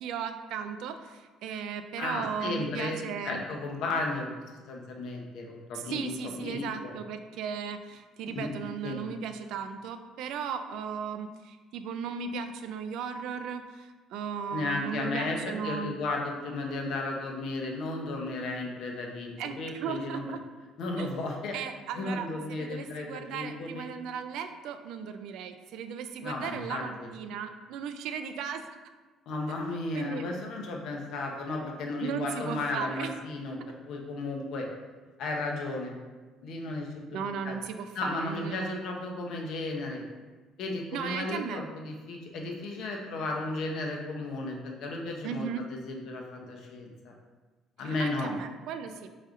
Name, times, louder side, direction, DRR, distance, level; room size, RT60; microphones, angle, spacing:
voice 1, 0.0-3.4 5.8-16.0 19.4-20.4 21.0-21.1 21.5-28.6 29.9-30.2 32.0-33.1 37.1-38.8 40.9-41.6 45.2-45.6 47.8-49.1, right 7 dB, 70° right, 8 dB, 0.3 m, -36 dB
voice 2, 2.0-4.3 4.7-7.0 8.3-8.5 8.8-9.0 14.5-20.3 20.8-21.5 22.0-23.9 26.2-27.1 29.3-33.6 33.9-34.7 35.2-35.9 36.4-37.5 38.0-40.0 40.6-47.1 47.8-48.3, left 2 dB, 55° left, 1 dB, 0.7 m, -34 dB
4.9 x 4.1 x 2.4 m, 1.3 s
cardioid pair, 175°, 0 cm